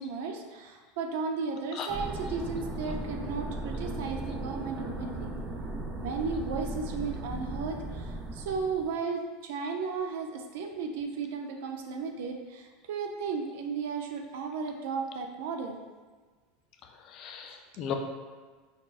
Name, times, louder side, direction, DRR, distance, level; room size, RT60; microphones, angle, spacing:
voice 1, 0.0-5.3 6.0-15.8 17.8-17.9, right 5 dB, 75° right, 3 dB, 0.6 m, -35 dB
sound 1, 1.9-8.9, right 2 dB, 20° right, 0.6 m, -37 dB
voice 2, 17.0-17.9, left 8 dB, 40° left, 4 dB, 0.5 m, -36 dB
4.2 x 4.2 x 2.5 m, 1.4 s
supercardioid pair, 140°, 0 cm